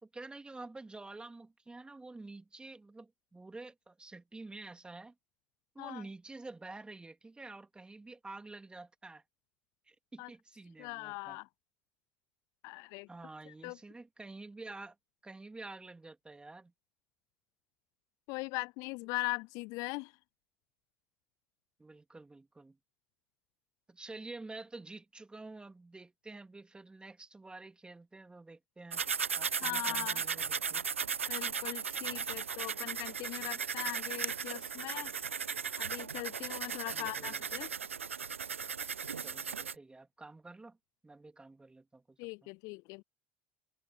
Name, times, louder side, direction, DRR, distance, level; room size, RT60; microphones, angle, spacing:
voice 1, 0.0-5.1 5.7-9.2 9.9-11.4 13.1-15.0 15.2-16.7 21.8-22.8 23.9-29.0 29.4-30.9 36.9-37.7 39.2-40.8 41.0-42.5, right 3 dB, 15° right, 2.7 m, -49 dB
voice 2, 10.8-11.5 12.6-13.1 13.5-13.8 18.3-20.1 29.6-30.2 31.3-35.1 35.8-37.7 42.2-43.0, left 26 dB, 55° left, 0.5 m, -40 dB
sound 1, 28.9-39.7, right 6 dB, 85° right, 0.4 m, -36 dB
open air
figure-of-eight pair, 65°, 7 cm